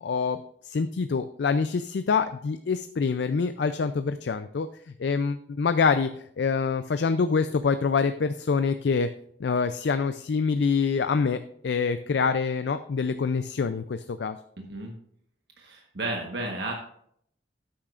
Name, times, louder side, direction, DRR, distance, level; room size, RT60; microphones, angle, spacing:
voice 1, 0.0-4.7 5.0-6.1 6.4-9.1 9.4-11.4 11.6-14.4, left 5 dB, 70° left, 10 dB, 0.4 m, -25 dB
voice 2, 14.6-14.9 15.6-16.7, right 2 dB, 70° right, 1 dB, 1.3 m, -33 dB
13.0 x 8.8 x 2.5 m, 0.68 s
head